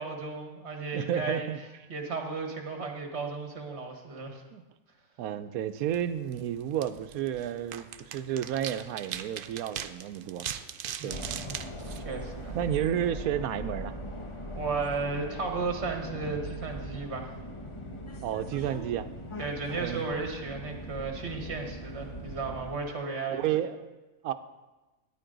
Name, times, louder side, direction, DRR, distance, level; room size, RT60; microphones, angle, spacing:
voice 1, 0.0-1.4 1.9-4.4 11.0-11.6 12.0-12.6 14.6-17.4 19.4-23.4, right 4 dB, 50° right, 3 dB, 1.8 m, -34 dB
voice 2, 0.9-1.6 4.5-4.6 5.2-10.5 11.0-11.2 12.5-14.0 18.2-19.1 19.7-20.1 23.3-24.0 24.2-24.3, right 10 dB, 90° right, 11 dB, 1.1 m, -31 dB
sound 1, 5.8-12.8, right 9 dB, 70° right, 0.5 m, -41 dB
sound 2, 11.1-22.8, equal, 25° left, 1.0 m, -40 dB
14.0 x 9.9 x 3.9 m, 1.1 s
omnidirectional pair, 1.5 m